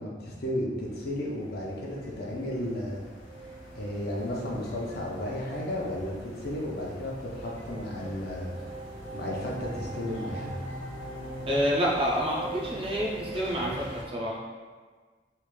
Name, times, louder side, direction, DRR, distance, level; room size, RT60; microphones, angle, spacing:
voice 1, 0.0-3.0 3.7-8.5 9.1-10.5, left 1 dB, 60° left, -3 dB, 0.6 m, -33 dB
sound 1, 0.8-14.0, right 1 dB, 75° left, 1.0 m, -41 dB
voice 2, 11.5-14.4, equal, 30° right, -4 dB, 0.6 m, -28 dB
3.3 x 2.5 x 3.1 m, 1.5 s
head